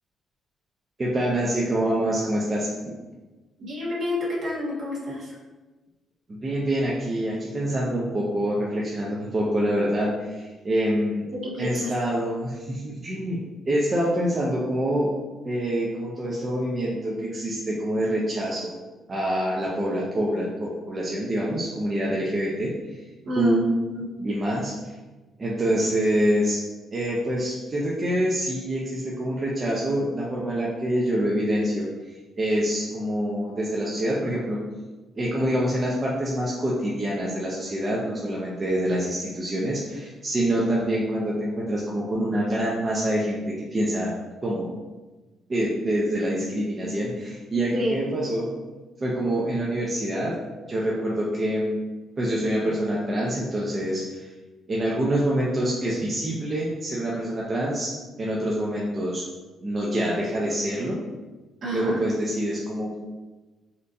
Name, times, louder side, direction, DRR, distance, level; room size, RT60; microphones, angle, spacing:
voice 1, 1.0-2.7 6.3-11.3 11.6-13.4 13.7-15.1 15.4-18.7 19.1-23.0 23.4-23.6 24.2-24.7 25.4-26.6 26.9-31.9 32.4-34.6 35.2-43.4 43.7-44.1 44.4-44.7 45.5-48.5 49.0-50.3 50.7-51.8 52.2-54.3 54.7-57.9 58.2-59.2 59.6-61.0 61.7-63.0, right 1 dB, 30° right, -5 dB, 0.6 m, -26 dB
voice 2, 3.6-5.3 11.3-11.9 23.2-23.6 23.9-24.1 47.5-48.0 61.6-62.0, left 1 dB, 60° right, -6 dB, 1.3 m, -29 dB
4.3 x 2.6 x 2.6 m, 1.2 s
cardioid pair, 90°, 0 cm